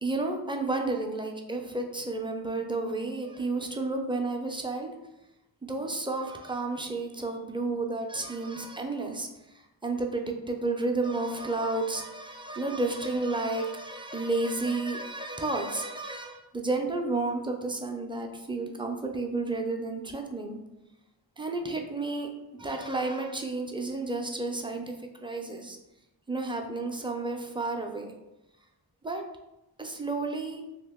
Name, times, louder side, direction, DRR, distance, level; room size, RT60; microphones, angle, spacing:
voice 1, 0.0-4.9 5.6-20.6 21.4-22.3 22.6-25.8 26.3-28.1 29.0-29.2 29.8-30.6, right 2 dB, 10° right, 2 dB, 0.4 m, -31 dB
2.9 x 2.6 x 3.5 m, 0.94 s
wide cardioid pair, 70°, 44 cm